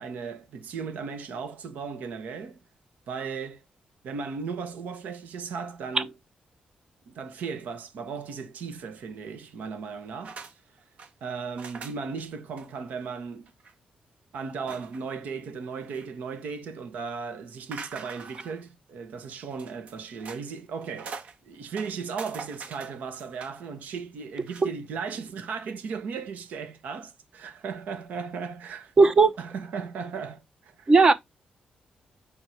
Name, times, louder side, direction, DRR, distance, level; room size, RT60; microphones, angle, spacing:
voice 1, 0.0-2.6 3.1-3.6 4.0-6.1 7.1-10.4 11.2-13.5 14.3-28.9 29.4-30.9, right 5 dB, 80° right, 1.2 m, -36 dB
sound 1, 10.2-10.5 10.8-11.1 11.6-12.2 12.6-12.7 13.0-13.1 13.5-13.7 14.7-15.1 15.6-16.3 17.7-18.6 19.5-20.4 20.8-21.4 21.7-23.6 24.4-24.7, right 5 dB, 55° right, 1.3 m, -43 dB
voice 2, 29.0-29.3 30.9-31.1, right 4 dB, 30° right, 0.8 m, -16 dB
5.6 x 4.3 x 4.4 m
wide cardioid pair, 140°, 3 cm